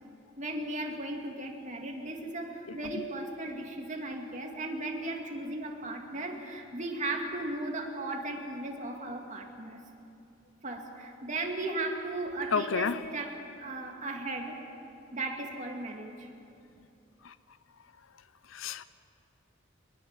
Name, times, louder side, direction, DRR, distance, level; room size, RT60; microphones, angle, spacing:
voice 1, 0.4-9.8 10.6-13.3 13.6-14.6 15.1-16.3, right 2 dB, 35° right, 1 dB, 2.6 m, -36 dB
voice 2, 12.5-13.0 18.5-18.8, left 5 dB, 80° left, 15 dB, 0.7 m, -29 dB
23.5 x 21.0 x 7.5 m, 2.6 s
head